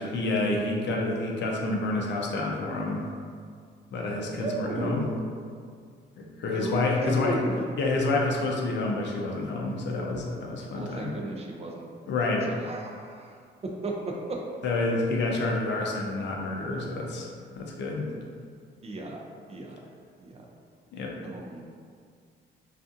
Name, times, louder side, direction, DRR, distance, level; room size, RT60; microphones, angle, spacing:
voice 1, 0.0-3.0 3.9-5.1 6.2-7.4 7.8-11.1 12.1-12.5 14.6-17.3 17.6-18.1 20.9-21.1, left 2 dB, 65° left, -1 dB, 0.5 m, -28 dB
voice 2, 4.4-5.2 6.5-7.6 10.7-11.9 12.5-14.4 18.8-19.2 19.5-19.8 20.2-20.5 21.2-21.6, right 2 dB, 30° right, -1 dB, 0.4 m, -35 dB
2.6 x 2.4 x 2.4 m, 2.1 s
cardioid pair, 90°, 20 cm